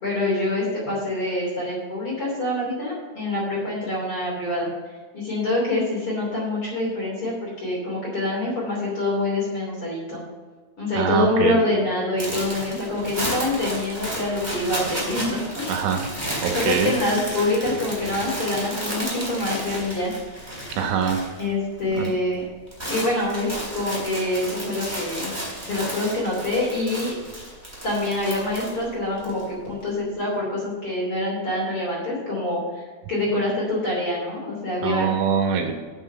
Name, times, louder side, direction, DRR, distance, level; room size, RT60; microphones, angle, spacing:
voice 1, 0.0-4.7 5.1-10.2 10.8-15.6 16.5-20.1 21.4-22.4 22.8-23.5 23.7-25.3 25.7-27.1 27.8-32.8 33.1-35.1, left 2 dB, 35° left, -5 dB, 2.9 m, -25 dB
voice 2, 11.0-11.6 15.7-16.1 16.4-16.9 20.8-21.2 21.9-22.1 34.8-35.7, right 7 dB, 75° right, 3 dB, 3.5 m, -23 dB
sound 1, 12.2-21.5 21.7-22.1 22.4-29.4, equal, 5° right, 2.5 m, -32 dB
8.0 x 7.9 x 6.5 m, 1.4 s
omnidirectional pair, 5.9 m